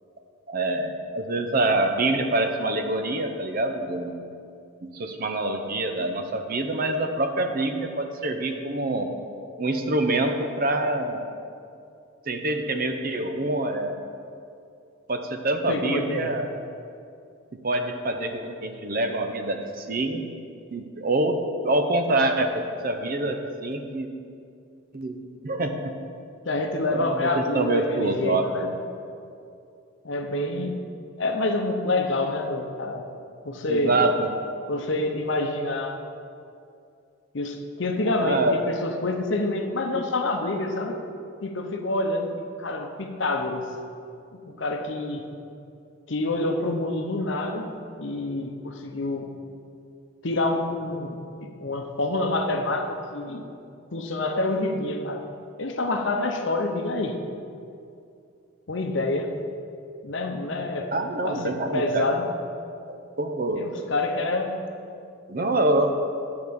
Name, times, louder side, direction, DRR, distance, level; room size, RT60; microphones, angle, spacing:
voice 1, 0.5-4.1 4.8-9.1 9.6-11.2 12.3-14.0 15.1-16.5 17.6-20.2 20.7-21.4 21.6-24.1 24.9-26.0 26.9-28.7 33.7-34.3 38.1-38.6 39.9-40.0 60.9-62.1 62.9-63.7 65.3-65.9, right 2 dB, 45° right, 5 dB, 0.7 m, -26 dB
voice 2, 15.7-16.3 26.4-28.7 30.0-30.8 31.2-33.0 33.4-34.0 34.7-36.0 37.3-41.0 41.4-43.6 44.5-45.2 46.1-47.7 48.0-49.3 50.2-53.4 53.9-55.2 55.6-57.2 58.7-59.3 60.0-60.9 61.2-62.3 63.5-64.5, left 2 dB, 60° left, 4 dB, 0.8 m, -27 dB
9.6 x 4.8 x 6.9 m, 2.5 s
head